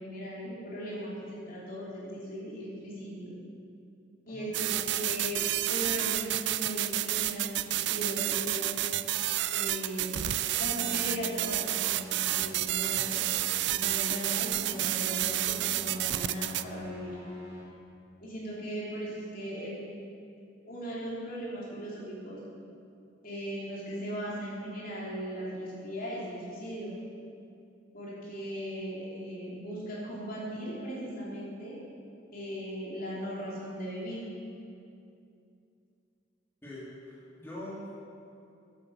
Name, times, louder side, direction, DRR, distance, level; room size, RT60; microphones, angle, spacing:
voice 1, 0.0-3.3 4.2-8.8 9.5-10.2 10.5-13.2 13.7-17.2 18.2-19.8 20.7-22.4 23.2-27.0 27.9-31.8 32.3-34.2, equal, 50° left, -6 dB, 3.5 m, -38 dB
sound 1, 4.5-16.6, right 14 dB, 65° right, 0.4 m, -30 dB
sound 2, 10.3-17.6, left 1 dB, 15° right, 2.8 m, -47 dB
voice 2, 36.6-37.9, left 1 dB, 15° left, -8 dB, 2.3 m, -43 dB
10.5 x 8.3 x 7.5 m, 2.5 s
head